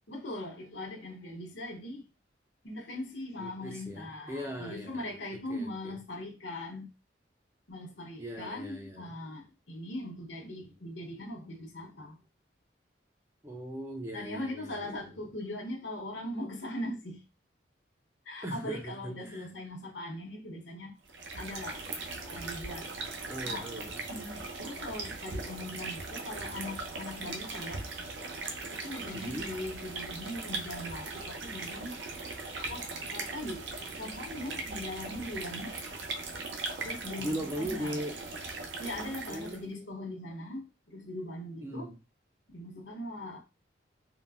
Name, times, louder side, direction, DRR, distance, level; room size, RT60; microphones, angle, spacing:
voice 1, 0.1-2.1 2.6-6.9 7.7-12.2 14.1-17.2 18.2-20.9 21.4-21.8 22.3-22.9 23.4-23.7 24.1-27.8 28.7-32.0 32.7-33.7 34.0-35.8 36.8-38.0 38.8-41.9 42.5-43.4, left 1 dB, 75° left, 1.0 m, -40 dB
voice 2, 3.4-5.0 5.5-6.0 8.2-9.1 13.4-15.0 18.4-19.5 23.3-24.0 29.1-29.5 37.2-38.2 39.3-40.2 41.6-42.0, equal, 15° right, 0.4 m, -39 dB
sound 1, 21.0-39.7, right 3 dB, 70° right, 0.6 m, -39 dB
3.7 x 2.1 x 2.4 m
head